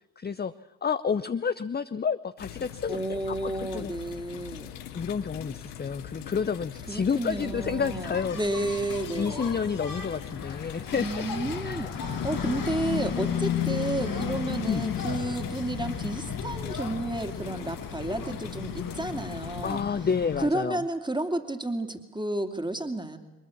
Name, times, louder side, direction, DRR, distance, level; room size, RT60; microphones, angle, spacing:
voice 1, 0.2-0.5 0.8-3.9 4.9-8.4 9.1-11.2 11.6-11.9 14.6-14.9 19.6-20.8, left 6 dB, 20° left, 12 dB, 0.7 m, -30 dB
sound 1, 2.4-19.8, left 11 dB, 85° left, 1.2 m, -42 dB
voice 2, 2.9-4.7 6.9-9.7 10.9-19.8 20.4-23.2, right 1 dB, 10° right, 7 dB, 2.7 m, -31 dB
Engine, 7.6-20.5, left 7 dB, 45° left, 2.1 m, -34 dB
sound 2, 10.0-16.1, left 6 dB, 70° left, 5.3 m, -49 dB
22.5 x 20.5 x 7.3 m, 1.1 s
hypercardioid pair, 40°, 46 cm